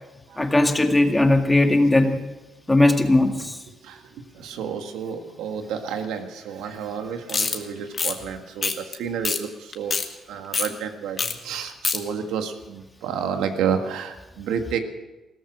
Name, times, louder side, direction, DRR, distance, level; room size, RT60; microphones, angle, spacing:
voice 1, 0.4-2.2 2.7-3.6, left 2 dB, 15° left, 4 dB, 2.0 m, -18 dB
voice 2, 3.8-10.0 10.3-14.8, right 7 dB, 90° right, 6 dB, 1.7 m, -30 dB
sound 1, 7.3-7.6 7.9-8.1 8.6-8.9 9.2-9.4 9.7-10.1 10.5-10.7 11.2-11.3 11.6-12.0, left 5 dB, 40° left, 1.8 m, -24 dB
16.5 x 14.0 x 6.2 m, 1.1 s
cardioid pair, 90°, 0 cm